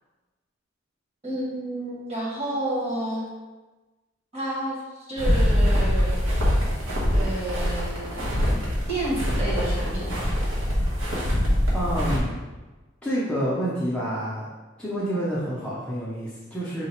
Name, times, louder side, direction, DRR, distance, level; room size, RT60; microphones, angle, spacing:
voice 1, 1.2-3.3 4.3-6.2 7.1-10.3, right 1 dB, 30° right, -6 dB, 1.2 m, -31 dB
sound 1, 5.2-12.2, equal, 80° right, 1.1 m, -24 dB
voice 2, 11.7-12.4 13.0-14.5 14.8-16.9, equal, 5° left, -9 dB, 0.6 m, -28 dB
3.8 x 2.2 x 4.2 m, 1.2 s
head